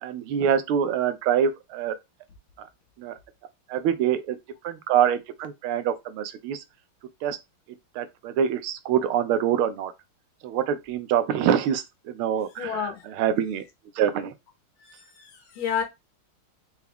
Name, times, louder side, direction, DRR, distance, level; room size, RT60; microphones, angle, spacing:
voice 1, 0.0-1.9 2.6-2.7 3.0-3.1 3.7-4.4 4.6-6.6 7.2-7.4 8.0-9.9 10.4-12.7 13.2-13.6 14.0-14.3, right 9 dB, 85° right, 1.5 m, -25 dB
voice 2, 12.6-13.1 14.8-15.8, left 7 dB, 75° left, 1.7 m, -31 dB
4.5 x 2.4 x 3.4 m
omnidirectional pair, 2.3 m